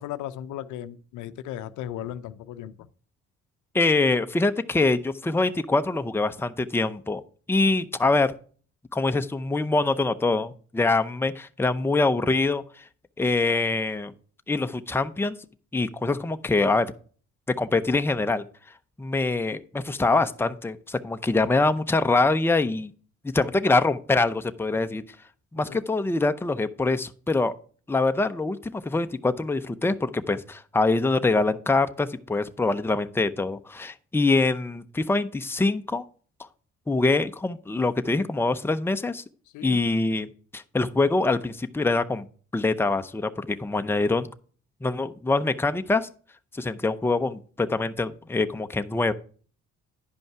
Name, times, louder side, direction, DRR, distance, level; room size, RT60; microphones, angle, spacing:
voice 1, 0.0-2.9 25.6-25.8 39.5-39.8, left 11 dB, 80° left, 0.6 m, -36 dB
voice 2, 3.7-7.2 7.5-8.3 8.9-12.6 13.2-14.1 14.5-15.3 15.7-16.9 17.6-18.4 19.0-22.9 23.3-25.0 25.5-27.5 27.9-36.0 36.9-39.2 39.6-40.3 40.5-42.2 42.5-44.3 44.8-46.1 46.5-49.1, left 3 dB, 10° left, 0.6 m, -24 dB
10.0 x 5.3 x 4.7 m
cardioid pair, 80°, 30 cm